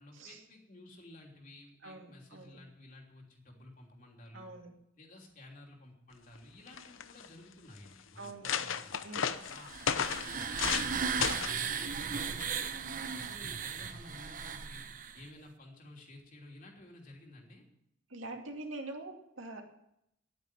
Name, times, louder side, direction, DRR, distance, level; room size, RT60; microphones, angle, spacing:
voice 1, 0.0-4.5 5.0-8.9 9.5-12.6 13.0-14.8 15.1-17.6, left 1 dB, 45° left, 0 dB, 3.2 m, -53 dB
voice 2, 1.8-2.6 4.3-4.8 8.2-8.7 9.0-9.5 18.1-19.6, right 2 dB, 85° right, 2 dB, 2.4 m, -45 dB
sound 1, 6.3-6.4 6.7-7.3 7.9-8.0 8.2-10.9 11.2-11.6 12.4-12.7, left 7 dB, 85° left, 0.8 m, -34 dB
sound 2, 9.4-15.3, right 6 dB, 45° right, 0.8 m, -36 dB
11.0 x 9.3 x 9.9 m, 0.78 s
head